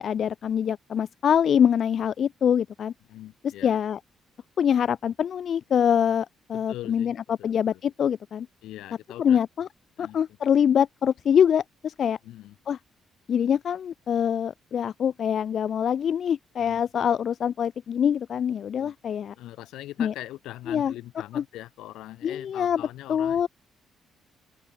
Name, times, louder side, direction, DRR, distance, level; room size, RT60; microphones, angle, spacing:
voice 1, 0.0-2.9 3.6-4.0 4.6-7.1 7.4-8.5 9.2-9.7 10.0-12.2 12.7-12.8 13.3-19.3 20.0-20.1 20.7-20.9 21.3-21.4 22.2-22.8 23.1-23.5, left 8 dB, 60° left, 0.4 m, -24 dB
voice 2, 3.1-3.7 6.5-7.1 7.4-7.5 8.6-9.4 10.0-10.2 12.2-12.5 16.6-16.8 18.7-18.9 19.3-23.5, left 15 dB, 90° left, 1.5 m, -41 dB
open air
cardioid pair, 90°, 0 cm